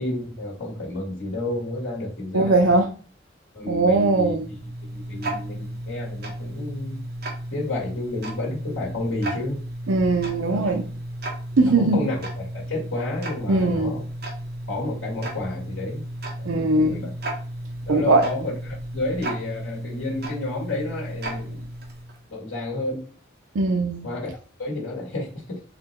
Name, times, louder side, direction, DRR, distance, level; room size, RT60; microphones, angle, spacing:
voice 1, 0.0-2.7 3.5-7.0 7.5-9.6 10.5-10.8 11.7-14.1 14.7-16.0 16.4-17.2 17.9-21.7 22.3-23.1 24.0-24.3 24.6-25.6, left 2 dB, 85° left, -2 dB, 1.9 m, -31 dB
voice 2, 2.3-2.9 3.7-4.4 9.9-10.8 11.6-12.0 13.5-13.9 16.5-17.0 17.9-18.2 23.5-24.1, right 2 dB, 80° right, 2 dB, 0.5 m, -20 dB
Tick-tock, 3.9-22.2, right 1 dB, 50° right, 1.2 m, -34 dB
4.2 x 2.8 x 4.2 m, 0.38 s
head